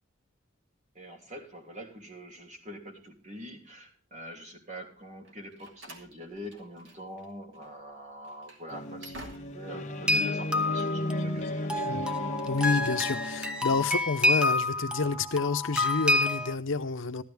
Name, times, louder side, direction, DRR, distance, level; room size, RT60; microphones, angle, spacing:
voice 1, 0.9-11.7, equal, 35° right, 3.0 m, -44 dB
Slam, 5.2-7.3 7.5-7.7 8.2-9.8, right 1 dB, 65° right, 2.6 m, -49 dB
sound 1, 8.7-13.9, left 1 dB, 35° left, 1.3 m, -34 dB
sound 2, 10.1-16.5, left 2 dB, 5° right, 0.8 m, -28 dB
voice 2, 12.5-17.2, left 4 dB, 70° left, 0.8 m, -29 dB
14.5 x 12.5 x 3.5 m
head